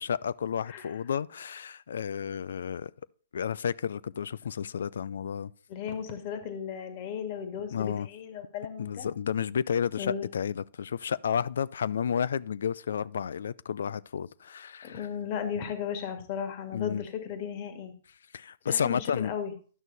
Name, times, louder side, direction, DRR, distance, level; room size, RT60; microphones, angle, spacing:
voice 1, 0.0-2.9 3.3-5.5 7.7-8.1 8.8-15.1 16.7-17.1 18.3-19.3, left 7 dB, 75° left, 0.4 m, -31 dB
voice 2, 5.7-9.1 10.0-10.3 14.8-17.9 18.7-19.5, left 7 dB, 45° left, 1.9 m, -35 dB
11.0 x 6.3 x 4.0 m
hypercardioid pair, 135°, 0 cm